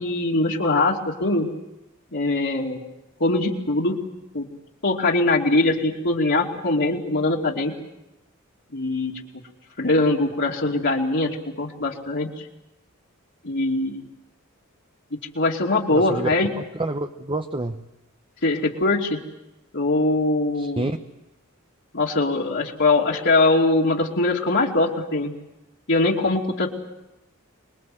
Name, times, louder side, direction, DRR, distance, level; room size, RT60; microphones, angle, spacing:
voice 1, 0.0-1.5 2.1-2.8 3.2-4.0 4.3-4.5 4.8-7.7 8.7-9.1 9.8-12.3 13.4-14.0 15.3-16.5 18.4-19.2 19.7-20.9 21.9-25.3 25.9-26.7, left 2 dB, 60° left, -3 dB, 2.8 m, -22 dB
voice 2, 15.9-16.3 16.5-17.8 20.6-21.0, right 2 dB, 25° right, 7 dB, 1.0 m, -28 dB
26.0 x 22.0 x 7.9 m, 0.94 s
head